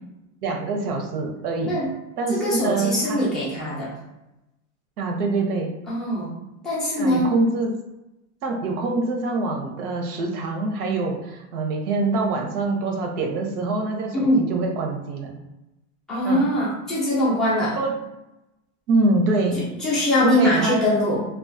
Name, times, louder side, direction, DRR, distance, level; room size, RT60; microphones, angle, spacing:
voice 1, 0.4-1.8 2.2-3.3 3.6-3.7 5.0-5.7 7.0-7.7 8.4-15.3 16.2-16.5 17.8-17.9 18.9-19.7 20.2-20.9, right 2 dB, 85° right, 2 dB, 0.8 m, -25 dB
voice 2, 2.3-3.9 5.9-6.3 6.6-7.3 14.1-14.5 16.1-17.8 19.5-21.2, left 1 dB, ahead, -9 dB, 0.3 m, -22 dB
2.5 x 2.3 x 2.5 m, 0.94 s
supercardioid pair, 140°, 44 cm